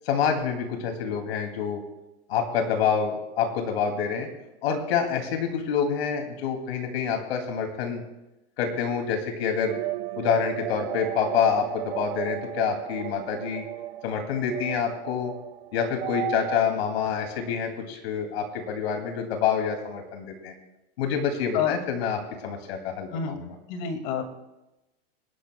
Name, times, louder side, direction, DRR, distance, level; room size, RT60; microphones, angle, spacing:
voice 1, 0.0-1.8 2.3-4.3 4.6-8.0 8.6-9.8 10.2-13.6 14.0-15.3 15.7-20.5 21.0-22.2 22.4-23.4, left 7 dB, 85° left, 4 dB, 2.5 m, -27 dB
sound 1, 9.7-16.6, right 14 dB, 65° right, 1.0 m, -34 dB
voice 2, 23.7-24.2, left 7 dB, 50° left, 6 dB, 2.1 m, -27 dB
26.0 x 11.0 x 2.2 m, 0.99 s
supercardioid pair, 160°, 31 cm